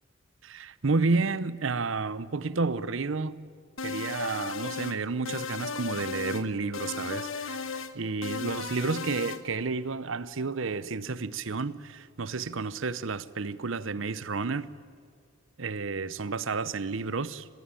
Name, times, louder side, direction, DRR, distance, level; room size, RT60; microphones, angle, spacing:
voice 1, 0.4-3.4 3.8-14.7 15.6-17.5, right 4 dB, 70° right, 0.8 m, -31 dB
sound 1, 3.8-5.0 5.3-6.5 6.7-7.9 8.2-9.4, left 5 dB, 75° left, 1.2 m, -35 dB
26.0 x 20.0 x 9.0 m
head